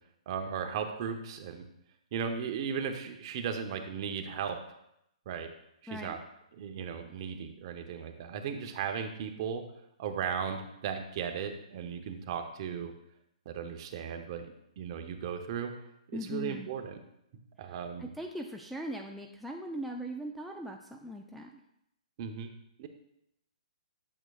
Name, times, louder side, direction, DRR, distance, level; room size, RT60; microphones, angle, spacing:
voice 1, 0.3-1.6 2.1-4.6 5.3-5.5 5.8-6.2 6.6-9.6 10.0-12.9 13.5-15.7 16.1-17.0 17.6-18.1 22.2-22.5 22.8-22.9, right 7 dB, 40° right, 6 dB, 0.8 m, -36 dB
voice 2, 5.9-6.2 16.1-16.7 17.6-21.6, equal, ahead, 0 dB, 0.3 m, -40 dB
8.7 x 6.4 x 2.4 m, 0.80 s
hypercardioid pair, 155°, 4 cm